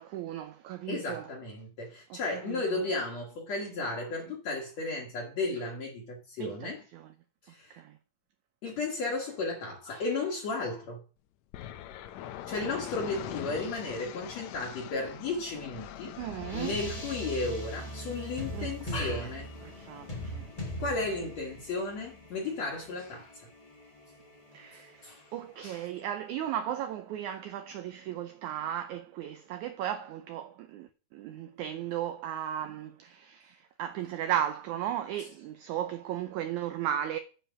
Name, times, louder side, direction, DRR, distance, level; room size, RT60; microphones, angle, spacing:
voice 1, 0.0-1.3 2.1-2.8 6.4-7.1 7.7-8.0 16.2-16.8 18.5-19.2 19.6-20.5 24.5-37.2, right 10 dB, 80° right, 1.7 m, -36 dB
voice 2, 0.9-6.8 7.4-7.8 8.6-11.0 12.5-16.1 16.5-19.5 20.8-23.5 25.0-25.3 25.6-25.8, left 3 dB, 55° left, 2.3 m, -34 dB
sound 1, 11.5-21.4, left 11 dB, 90° left, 1.5 m, -45 dB
sound 2, 15.3-26.0, equal, 30° left, 0.6 m, -42 dB
9.0 x 5.0 x 6.1 m
omnidirectional pair, 4.1 m